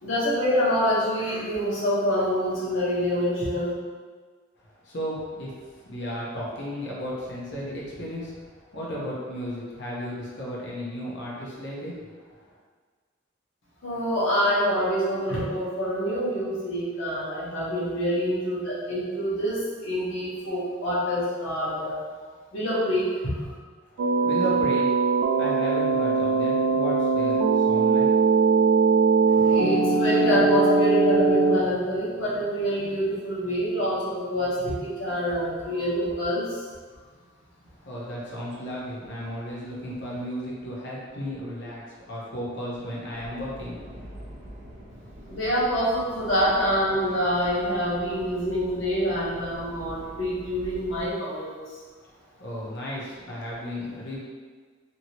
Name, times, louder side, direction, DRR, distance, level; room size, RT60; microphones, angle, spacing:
voice 1, 0.0-3.7 13.8-22.0 22.5-23.5 29.3-36.6 45.3-51.5, equal, 80° left, -7 dB, 1.1 m, -26 dB
voice 2, 4.6-12.5 24.0-24.9 25.3-28.3 37.8-44.1 52.0-54.2, equal, 60° left, -5 dB, 0.8 m, -34 dB
sound 1, 24.0-31.6, right 4 dB, 90° right, 0.3 m, -21 dB
Subway metro underground, 43.1-51.1, equal, 40° right, 0.7 m, -44 dB
2.8 x 2.8 x 2.9 m, 1.5 s
head